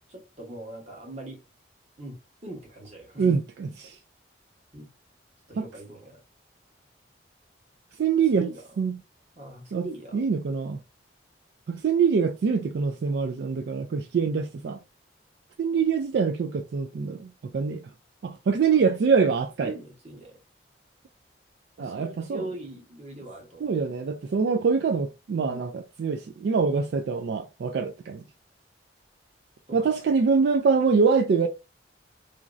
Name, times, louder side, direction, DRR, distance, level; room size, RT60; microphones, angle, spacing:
voice 1, 0.1-1.4 2.0-3.3 4.7-4.9 5.5-6.2 8.3-8.6 9.4-10.2 19.6-20.4 21.8-23.7 25.4-25.7 29.7-30.0, right 1 dB, 35° right, 0.9 m, -41 dB
voice 2, 3.2-4.0 5.6-5.7 8.0-8.5 8.8-9.0 9.7-9.9 10.1-10.8 11.7-14.8 15.6-17.8 18.2-19.8 21.8-22.5 23.6-28.2 29.7-31.5, right 5 dB, 65° right, 0.3 m, -24 dB
3.0 x 2.5 x 2.4 m
head